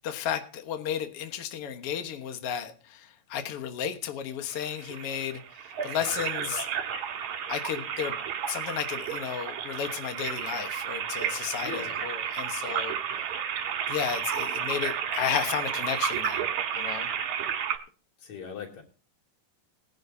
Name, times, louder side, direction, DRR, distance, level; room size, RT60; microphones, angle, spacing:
voice 1, 0.0-5.4 5.8-6.7 7.5-8.1 8.5-12.9 13.9-16.4 16.7-17.1, left 9 dB, 80° left, 7 dB, 1.3 m, -33 dB
sound 1, 4.5-17.8, right 8 dB, 55° right, 2.5 m, -32 dB
voice 2, 11.6-12.0 18.2-18.8, left 6 dB, 45° left, 2 dB, 3.6 m, -39 dB
20.5 x 10.5 x 2.7 m, 0.37 s
omnidirectional pair, 4.7 m